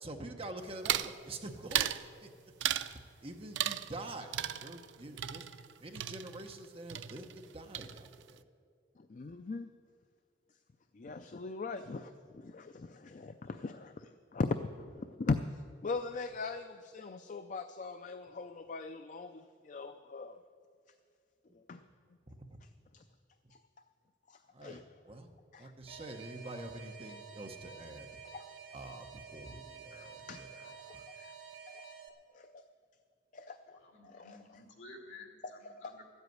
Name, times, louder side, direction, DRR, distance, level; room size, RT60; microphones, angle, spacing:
voice 1, 0.0-2.3 2.6-5.5 5.8-8.4 13.4-13.5 22.3-22.4 24.5-28.1 28.7-31.0, right 2 dB, 30° right, 4 dB, 1.0 m, -46 dB
sound 1, 0.8-1.2 1.7-2.0 2.6-3.0 3.5-4.1 4.3-6.6 6.9-7.5 7.7-8.3, right 11 dB, 80° right, 0.4 m, -35 dB
voice 2, 9.0-9.7 10.9-14.5 14.8-20.4 21.5-21.8 22.9-23.0 23.5-23.6 24.3-24.8 25.5-25.7 28.3-28.5 29.9-31.3 31.7-31.9 32.3-32.7 33.3-33.8 34.0-34.6 35.4-35.9, left 3 dB, 40° left, 9 dB, 0.4 m, -41 dB
Alarm, 25.9-32.1, right 6 dB, 65° right, 1.5 m, -50 dB
voice 3, 33.7-36.0, left 3 dB, 75° left, 1 dB, 2.5 m, -53 dB
13.5 x 8.1 x 9.3 m, 2.2 s
head